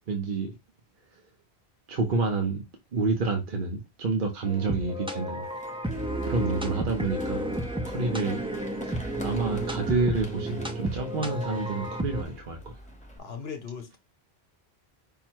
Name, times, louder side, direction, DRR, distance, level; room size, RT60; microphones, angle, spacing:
voice 1, 0.1-0.6 1.9-2.6 2.9-5.4 6.2-7.5 7.9-8.4 8.9-12.7, right 3 dB, 55° right, 0.9 m, -28 dB
sound 1, 4.5-12.2, right 1 dB, 10° right, 0.3 m, -32 dB
Run, 5.4-13.2, left 1 dB, 10° left, 0.7 m, -47 dB
voice 2, 5.9-6.8 13.2-14.0, left 6 dB, 70° left, 1.0 m, -40 dB
5.5 x 2.1 x 4.4 m
omnidirectional pair, 1.1 m